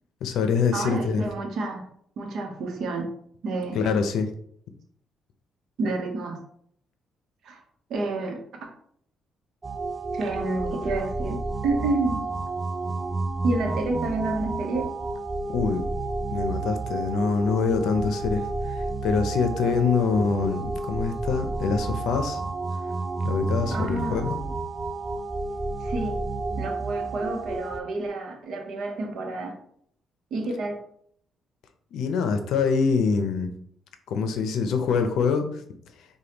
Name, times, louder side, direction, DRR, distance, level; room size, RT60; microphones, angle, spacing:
voice 1, 0.2-1.2 3.7-4.3 15.5-15.9 16.3-22.4 23.2-24.4 31.9-33.5 34.1-35.5, left 5 dB, 80° left, 7 dB, 0.5 m, -25 dB
voice 2, 0.7-1.8 2.2-3.1 3.4-3.8 5.8-6.4 7.4-7.6 7.9-8.4 10.1-12.2 13.4-14.9 23.7-24.3 25.8-26.2 26.6-29.6 30.3-30.8, right 2 dB, 70° right, 3 dB, 0.9 m, -29 dB
sound 1, 9.6-27.8, right 3 dB, 25° right, 0.3 m, -30 dB
4.9 x 2.3 x 2.9 m, 0.66 s
cardioid pair, 90°, 0 cm